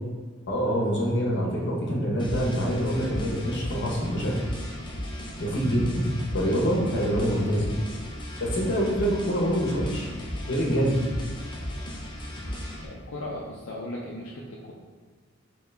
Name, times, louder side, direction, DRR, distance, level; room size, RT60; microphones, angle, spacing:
voice 1, 0.5-4.5 5.4-6.0 6.3-7.7 8.4-10.1 10.5-11.0, equal, 60° left, -2 dB, 0.9 m, -25 dB
sound 1, 2.2-12.9, equal, 25° left, 0.5 m, -35 dB
voice 2, 12.8-14.7, left 1 dB, 80° left, -4 dB, 0.5 m, -37 dB
3.6 x 2.9 x 3.3 m, 1.5 s
head